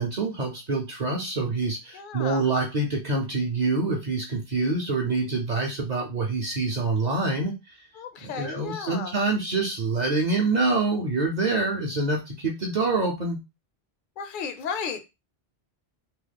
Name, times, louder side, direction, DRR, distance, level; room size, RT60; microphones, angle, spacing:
voice 1, 0.0-7.5 8.2-13.4, right 3 dB, 50° right, 0.7 m, -26 dB
voice 2, 1.9-2.5 7.9-9.1 14.2-15.0, left 6 dB, 60° left, 0.6 m, -34 dB
3.0 x 2.0 x 3.3 m
omnidirectional pair, 1.1 m